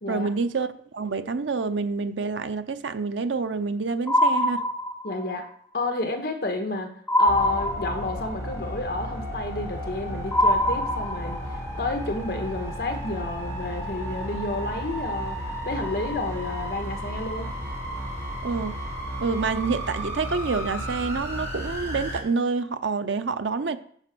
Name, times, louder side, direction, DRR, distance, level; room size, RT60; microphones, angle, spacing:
voice 1, 0.1-4.7 18.4-18.8 19.2-23.8, right 4 dB, 85° right, 0.6 m, -27 dB
sound 1, 4.1-5.3 7.1-8.3 10.3-11.5, equal, 5° left, 0.9 m, -23 dB
voice 2, 5.0-5.4 5.7-6.9 7.2-11.4 11.8-15.4 15.6-17.5, left 2 dB, 55° left, 1.5 m, -30 dB
sound 2, 7.2-22.2, equal, 20° right, 3.9 m, -33 dB
9.9 x 5.0 x 6.0 m
head